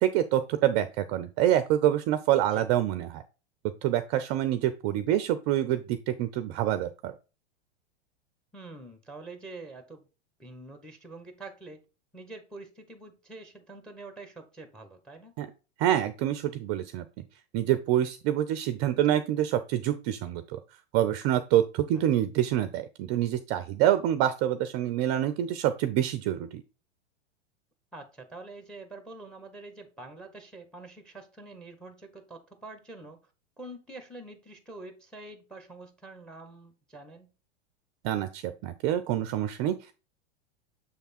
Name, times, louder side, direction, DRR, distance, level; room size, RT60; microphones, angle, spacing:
voice 1, 0.0-3.2 3.8-7.1 15.4-15.5 15.8-17.0 17.5-20.6 20.9-26.6 38.0-39.9, right 12 dB, 40° right, 12 dB, 0.5 m, -26 dB
voice 2, 8.5-10.1 10.4-11.8 12.1-15.3 21.9-22.0 27.9-33.2 33.6-37.3, right 2 dB, ahead, 9 dB, 0.9 m, -46 dB
6.9 x 3.4 x 4.2 m, 0.32 s
hypercardioid pair, 105°, 33 cm